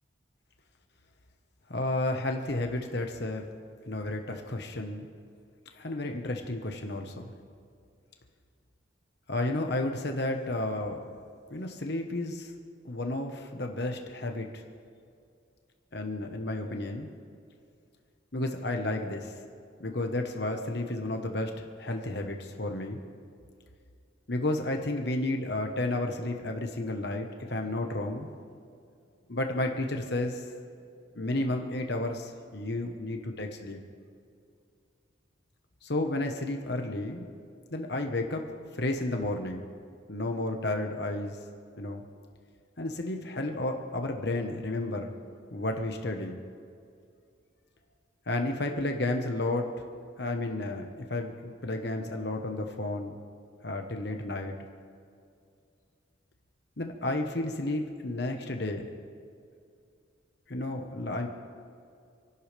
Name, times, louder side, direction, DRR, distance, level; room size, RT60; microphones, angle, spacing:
voice 1, 1.7-3.5 3.9-5.1 5.8-7.3 9.3-11.0 11.5-12.5 12.8-14.6 15.9-17.1 18.3-19.3 19.8-23.0 24.3-28.4 29.3-30.4 31.1-33.8 35.8-37.3 37.7-38.4 38.7-39.7 40.1-41.4 41.8-42.0 42.8-45.1 45.5-46.3 48.3-49.7 50.2-53.1 53.6-54.5 56.8-58.9 60.5-61.3, left 2 dB, 55° left, 3 dB, 1.2 m, -32 dB
28.0 x 12.0 x 3.4 m, 2.3 s
head